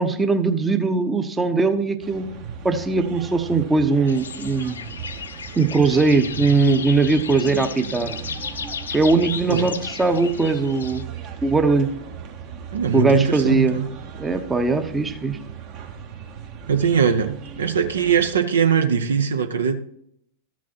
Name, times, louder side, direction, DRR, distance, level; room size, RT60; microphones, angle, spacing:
voice 1, 0.0-2.3 2.6-4.9 5.6-8.2 8.9-11.1 11.4-11.9 12.9-13.8 14.2-15.4, right 3 dB, 15° right, 8 dB, 0.8 m, -20 dB
sound 1, 2.0-18.3, right 7 dB, 40° right, 1.2 m, -37 dB
sound 2, 4.1-11.0, left 6 dB, 70° left, 0.5 m, -35 dB
voice 2, 12.7-13.9 16.7-19.8, right 7 dB, 70° right, 8 dB, 0.7 m, -21 dB
13.5 x 6.2 x 2.8 m, 0.71 s
figure-of-eight pair, 90°, 0 cm